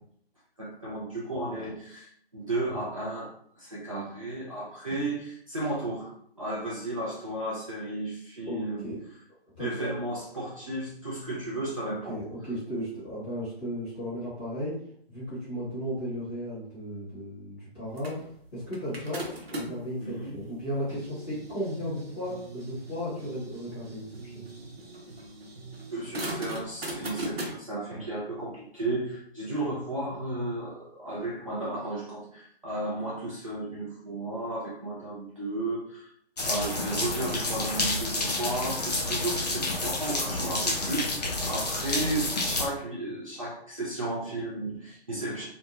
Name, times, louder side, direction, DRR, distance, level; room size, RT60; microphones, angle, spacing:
voice 1, 0.6-8.9 9.6-12.2 20.0-20.4 25.9-36.1 36.4-45.5, right 2 dB, 35° right, -6 dB, 0.5 m, -34 dB
voice 2, 8.4-8.9 9.6-9.9 11.8-14.7 15.1-24.5, equal, 10° left, -10 dB, 0.9 m, -35 dB
sound 1, 18.0-19.9 20.5-27.5, right 1 dB, 70° right, 0.8 m, -39 dB
sound 2, 36.4-42.7, left 2 dB, 40° left, 0.5 m, -29 dB
2.5 x 2.3 x 2.8 m, 0.64 s
figure-of-eight pair, 150°, 32 cm